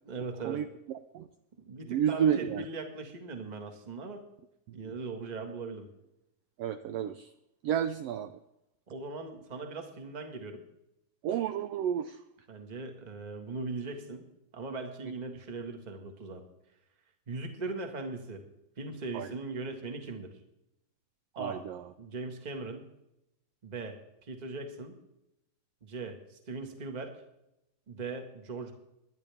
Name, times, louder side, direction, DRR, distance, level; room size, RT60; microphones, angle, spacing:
voice 1, 0.0-0.6 1.7-4.3 4.7-5.9 8.9-10.6 12.5-14.2 14.5-16.4 17.3-18.4 18.8-20.3 21.3-21.7 22.0-22.9 23.6-25.0 25.8-27.2 27.9-28.7, right 3 dB, 20° right, 5 dB, 1.1 m, -39 dB
voice 2, 1.9-2.6 4.8-4.9 6.6-7.3 7.6-8.3 11.2-12.2 19.1-19.3 21.4-21.8, right 9 dB, 85° right, 10 dB, 1.4 m, -30 dB
22.5 x 10.5 x 3.5 m, 0.86 s
omnidirectional pair, 3.4 m